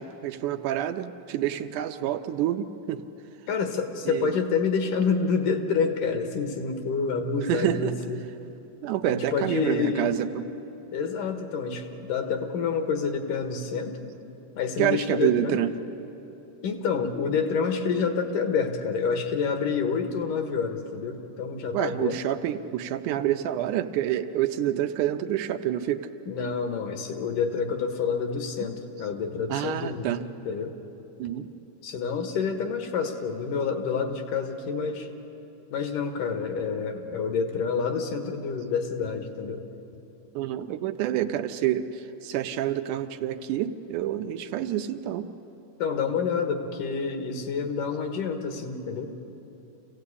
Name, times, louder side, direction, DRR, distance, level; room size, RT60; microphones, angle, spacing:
voice 1, 0.0-3.0 4.1-4.3 7.5-7.9 8.8-10.3 14.8-15.7 21.7-26.1 29.5-30.2 31.2-31.5 40.4-41.9 42.2-45.3, right 12 dB, 80° right, 8 dB, 2.1 m, -27 dB
voice 2, 3.5-8.2 9.0-10.1 10.9-14.0 14.6-15.6 16.6-22.2 26.3-30.2 30.5-30.7 31.8-35.1 35.7-39.6 45.8-49.1, left 5 dB, 80° left, 5 dB, 3.0 m, -28 dB
26.5 x 16.5 x 8.4 m, 3.0 s
omnidirectional pair, 3.7 m